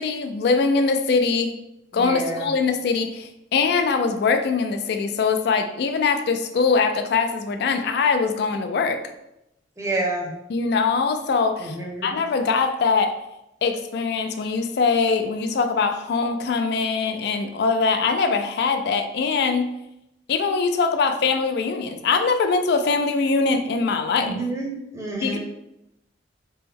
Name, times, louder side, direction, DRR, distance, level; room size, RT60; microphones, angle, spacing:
voice 1, 0.0-1.5 1.9-9.0 10.5-11.8 12.0-13.2 13.6-19.7 20.3-24.4 25.2-25.4, left 4 dB, 60° left, 7 dB, 0.3 m, -22 dB
voice 2, 1.9-2.5 9.8-10.3 11.6-12.1 24.2-25.4, right 2 dB, 15° right, -2 dB, 0.6 m, -29 dB
3.3 x 2.1 x 3.4 m, 0.86 s
head